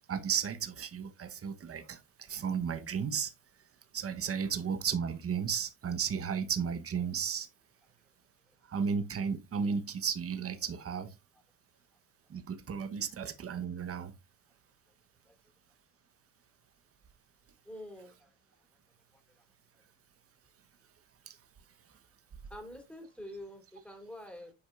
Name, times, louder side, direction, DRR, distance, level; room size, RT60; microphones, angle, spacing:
voice 1, 0.1-3.3 3.9-7.5 8.7-11.1 12.3-14.1 21.3-21.4, right 7 dB, 35° right, 1.2 m, -34 dB
voice 2, 17.6-18.3 19.4-19.5 22.5-24.5, left 1 dB, 5° left, 3.3 m, -46 dB
8.2 x 5.1 x 2.5 m
supercardioid pair, 85°, 39 cm